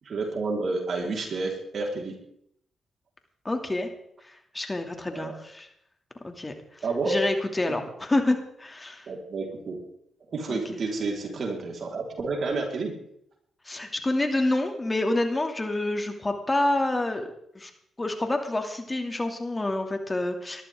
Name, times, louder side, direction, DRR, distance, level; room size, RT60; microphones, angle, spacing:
voice 1, 0.0-2.2 5.1-5.3 6.8-7.3 7.7-7.8 9.1-9.8 10.3-13.0, right 3 dB, 60° right, 0 dB, 4.7 m, -30 dB
voice 2, 3.4-3.9 4.3-5.7 6.2-9.1 10.5-10.6 13.6-17.3 17.5-17.7 18.0-20.6, left 2 dB, 25° left, 4 dB, 2.8 m, -28 dB
20.5 x 13.5 x 3.9 m, 0.73 s
supercardioid pair, 50°, 0 cm